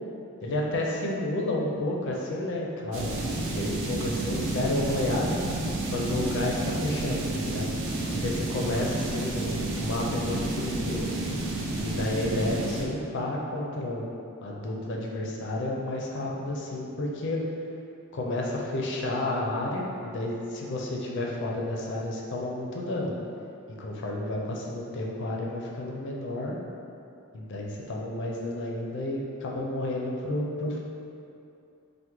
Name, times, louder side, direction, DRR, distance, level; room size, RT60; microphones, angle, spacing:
voice 1, 0.4-3.2 3.6-5.4 5.9-7.7 8.1-11.1 11.8-14.1 14.4-17.4 18.1-23.1 23.8-26.6 27.3-30.8, left 1 dB, 55° left, -2 dB, 0.4 m, -31 dB
sound 1, 2.9-12.8, right 2 dB, 60° right, 0.4 m, -31 dB
3.5 x 2.1 x 3.0 m, 2.7 s
head